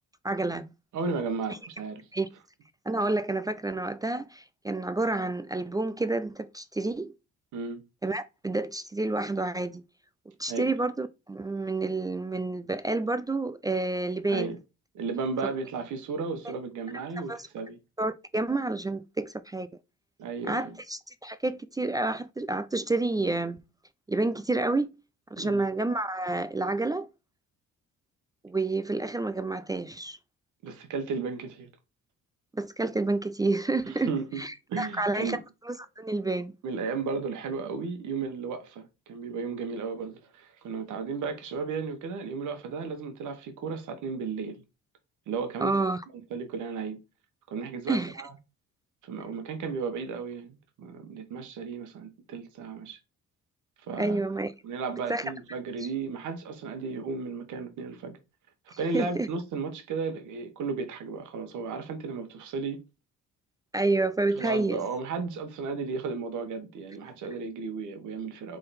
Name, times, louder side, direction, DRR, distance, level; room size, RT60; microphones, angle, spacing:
voice 1, 0.2-0.7 2.1-2.3 2.9-7.1 8.0-9.8 10.4-14.6 17.3-17.5 18.0-19.7 20.5-23.6 24.1-24.9 25.3-27.1 28.4-30.2 32.5-34.1 34.4-35.4 35.7-36.5 45.6-46.0 47.9-48.1 54.0-54.5 55.1-55.2 58.7-59.3 63.7-64.8, right 2 dB, 15° right, 0.3 m, -29 dB
voice 2, 0.9-2.0 7.5-7.8 10.5-10.7 14.3-14.6 14.9-17.8 20.2-20.8 25.4-25.7 30.6-31.7 33.8-34.4 34.7-35.4 36.6-44.6 45.3-45.7 46.3-47.0 47.5-48.3 49.0-53.0 53.9-54.2 54.6-58.2 58.8-62.8 64.4-68.6, right 4 dB, 75° right, 1.2 m, -34 dB
3.8 x 3.3 x 4.1 m
cardioid pair, 90°, 30 cm